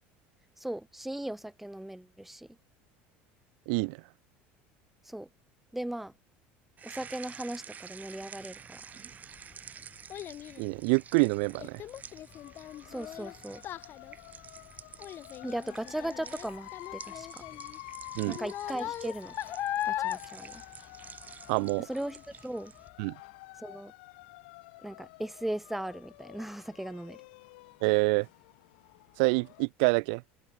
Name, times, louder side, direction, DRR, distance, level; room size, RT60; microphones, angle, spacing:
voice 1, 0.6-2.5 5.0-5.3 5.7-6.1 6.8-8.8 12.9-13.6 15.4-17.4 18.3-19.3 19.8-20.6 21.9-22.7 23.6-23.9 24.8-27.2, right 1 dB, 5° right, 1.6 m, -37 dB
voice 2, 3.7-4.0 10.6-11.8 18.1-18.4 21.5-21.9 23.0-23.2 27.8-28.3 29.2-30.2, right 34 dB, 75° right, 1.7 m, -26 dB
sound 1, 6.8-22.9, right 7 dB, 30° right, 2.4 m, -50 dB
Child speech kid speaking, 8.9-21.6 21.9-22.4 22.9-23.0, left 12 dB, 50° left, 5.5 m, -39 dB
sound 2, 12.3-29.7, left 23 dB, 80° left, 6.0 m, -49 dB
supercardioid pair, 105°, 5 cm